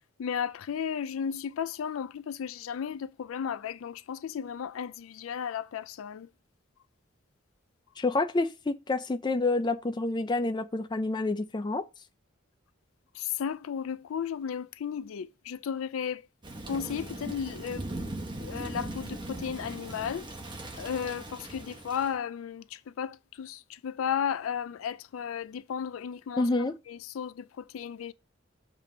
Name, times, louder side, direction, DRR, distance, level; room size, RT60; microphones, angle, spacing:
voice 1, 0.2-6.3 13.2-16.2 16.7-17.8 18.4-20.2 20.8-26.5 26.9-28.1, left 7 dB, 90° left, 0.4 m, -34 dB
voice 2, 8.0-11.8 26.4-26.8, left 2 dB, 20° left, 0.4 m, -28 dB
Thunder / Rain, 16.4-22.2, right 1 dB, 25° right, 0.8 m, -39 dB
7.4 x 2.8 x 5.1 m
head